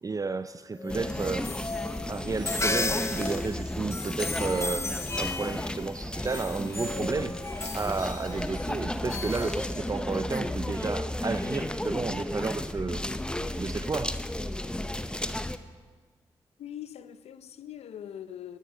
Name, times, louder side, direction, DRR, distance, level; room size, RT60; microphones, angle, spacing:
voice 1, 0.0-1.5 2.1-4.9 5.2-7.4 7.7-13.1 13.5-14.2, right 4 dB, 35° right, 0.5 m, -32 dB
sound 1, 0.8-10.3, left 2 dB, 25° left, 1.0 m, -35 dB
sound 2, 0.9-15.6, left 1 dB, 10° left, 0.8 m, -33 dB
voice 2, 16.6-18.6, left 10 dB, 75° left, 0.6 m, -42 dB
12.0 x 11.5 x 6.2 m
supercardioid pair, 40°, 11 cm